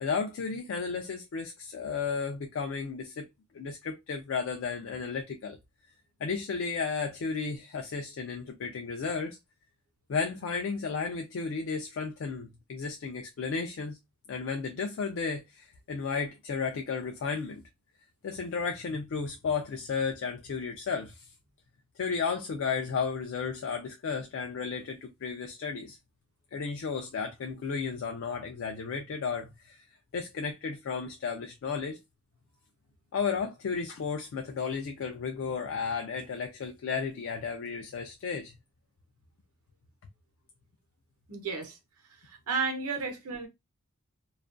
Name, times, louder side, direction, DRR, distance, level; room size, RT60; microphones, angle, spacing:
voice 1, 0.0-3.3 3.5-5.6 6.2-9.4 10.1-14.0 14.3-17.6 18.2-21.3 22.0-26.0 26.5-29.8 30.1-32.0 33.1-38.5, left 5 dB, 60° left, 0.3 m, -33 dB
voice 2, 41.3-41.8 42.2-43.5, right 4 dB, 80° right, 0.8 m, -32 dB
2.3 x 2.2 x 2.4 m
head